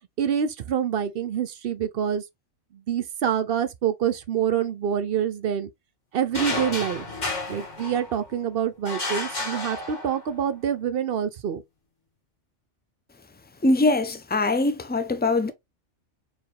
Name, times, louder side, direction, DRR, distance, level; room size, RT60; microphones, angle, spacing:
voice 1, 0.2-2.2 2.9-5.7 6.1-7.1 7.5-11.6, right 8 dB, 60° right, 0.7 m, -26 dB
sound 1, 6.3-8.3 8.9-10.4, left 3 dB, 40° left, 1.5 m, -31 dB
voice 2, 13.6-15.5, left 2 dB, 15° left, 0.4 m, -22 dB
4.5 x 3.4 x 3.3 m
omnidirectional pair, 1.3 m